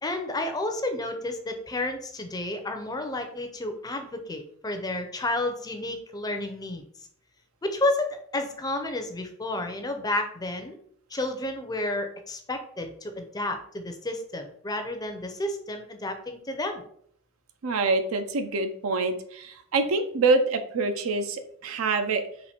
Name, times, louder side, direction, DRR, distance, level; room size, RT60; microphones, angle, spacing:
voice 1, 0.0-6.8 7.6-10.8 11.1-16.8, left 2 dB, 20° left, 6 dB, 0.5 m, -31 dB
voice 2, 17.6-22.2, right 3 dB, 75° right, 8 dB, 0.5 m, -26 dB
4.2 x 2.5 x 4.2 m, 0.63 s
head